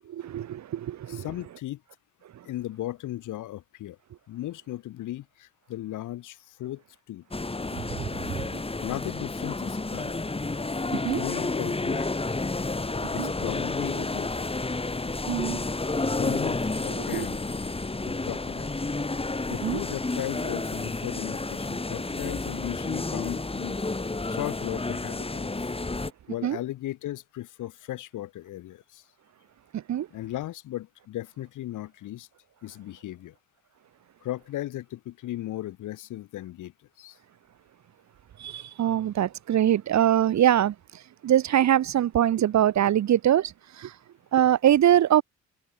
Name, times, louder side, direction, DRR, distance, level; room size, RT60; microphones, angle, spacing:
voice 1, 0.1-1.2 7.9-8.1 8.3-8.6 10.9-11.2 13.2-13.3 15.3-15.6 17.0-17.3 19.6-19.8 26.4-26.6 29.7-30.1 38.4-43.9 44.3-45.2, right 11 dB, 65° right, 1.9 m, -23 dB
voice 2, 1.1-1.8 2.4-4.0 4.3-7.2 8.8-10.2 10.9-12.1 13.1-14.5 16.1-17.4 18.1-18.8 19.5-23.8 24.3-25.7 26.3-29.0 30.1-32.3 32.6-33.4 34.2-37.2, left 14 dB, 85° left, 5.2 m, -36 dB
sound 1, 7.3-26.1, left 3 dB, 20° left, 5.6 m, -31 dB
cardioid pair, 90°, 30 cm